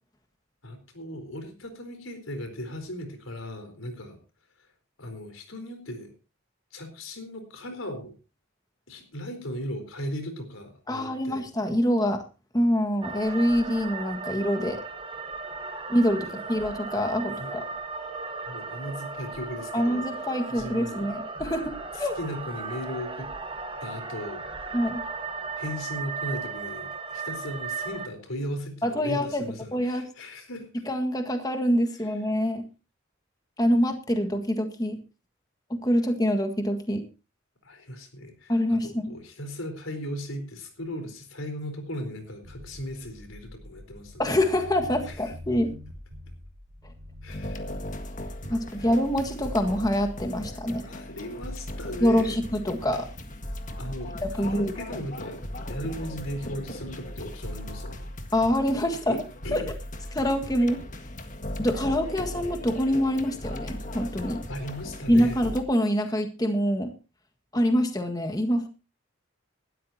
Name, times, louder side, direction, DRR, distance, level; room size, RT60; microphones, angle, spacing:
voice 1, 0.6-4.2 5.0-6.1 6.7-8.1 8.9-11.5 16.2-16.4 17.1-17.6 18.5-20.2 20.5-21.1 21.9-23.3 23.8-24.5 25.6-30.7 37.6-44.3 45.1-45.2 47.2-47.6 48.7-48.9 50.9-52.4 53.8-58.1 59.1-59.7 64.5-65.4, equal, 85° left, 7 dB, 4.2 m, -37 dB
voice 2, 10.9-12.2 12.5-14.8 15.9-17.6 19.7-22.1 24.7-25.0 28.8-29.4 29.7-30.1 30.9-32.6 33.6-35.0 35.8-37.0 38.5-39.1 44.2-45.7 48.5-50.8 52.0-53.1 54.2-54.7 58.3-59.2 59.5-59.6 60.1-60.8 61.6-64.4 65.1-66.9 67.5-68.7, equal, 20° left, 5 dB, 1.7 m, -25 dB
sound 1, 13.0-28.1, right 4 dB, 25° right, 1.3 m, -36 dB
sound 2, 42.4-47.5, left 1 dB, 70° right, 2.6 m, -44 dB
sound 3, 47.3-65.6, left 1 dB, 40° left, 1.7 m, -38 dB
19.5 x 13.0 x 2.8 m, 0.30 s
head